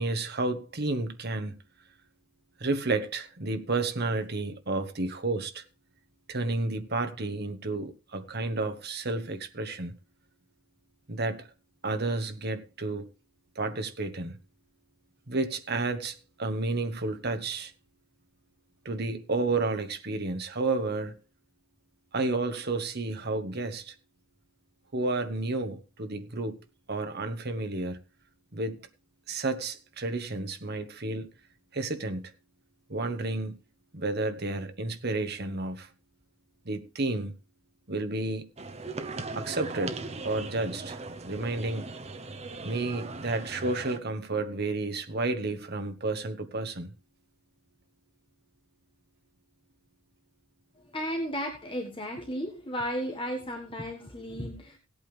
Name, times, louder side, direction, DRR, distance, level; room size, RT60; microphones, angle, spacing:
voice 1, 0.0-1.6 2.6-5.6 6.3-9.9 11.1-11.5 11.8-13.1 13.5-14.4 15.3-17.7 18.8-21.2 22.1-23.9 24.9-26.6 26.9-28.0 28.5-28.8 29.3-31.3 31.7-32.3 32.9-33.6 33.9-35.9 36.6-37.3 37.9-38.5 39.4-40.0 40.2-41.0 41.2-41.8 42.6-46.9, right 2 dB, 50° right, 1.3 m, -31 dB
sound 1, 38.6-44.0, right 3 dB, 30° right, 0.9 m, -39 dB
voice 2, 50.8-54.8, equal, 25° left, 1.6 m, -34 dB
17.0 x 8.5 x 3.4 m
head